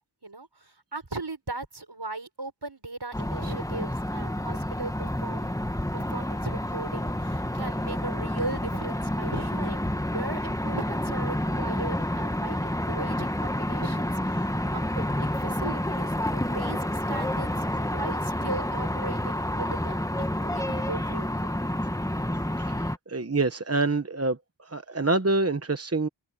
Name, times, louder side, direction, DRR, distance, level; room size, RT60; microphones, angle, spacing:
voice 1, 0.2-5.6 5.9-20.0 20.4-21.6, right 2 dB, 65° right, 6.5 m, -38 dB
sound 1, 3.1-23.0, left 1 dB, 10° left, 1.2 m, -29 dB
voice 2, 22.7-26.1, right 3 dB, 35° right, 1.0 m, -26 dB
wide cardioid pair, 50°, 44 cm